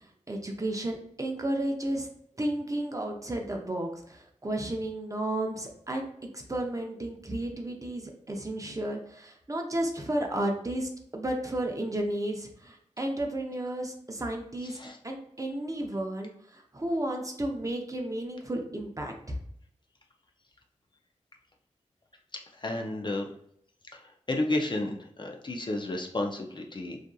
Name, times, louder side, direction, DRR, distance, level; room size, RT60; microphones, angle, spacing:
voice 1, 0.3-2.1 2.4-6.1 6.3-14.8 15.0-19.4, right 1 dB, 25° right, 2 dB, 0.6 m, -33 dB
voice 2, 14.6-15.0 22.6-23.3 23.9-24.0 24.3-27.0, left 2 dB, 40° left, 2 dB, 0.5 m, -31 dB
2.6 x 2.4 x 2.2 m, 0.68 s
cardioid pair, 45°, 13 cm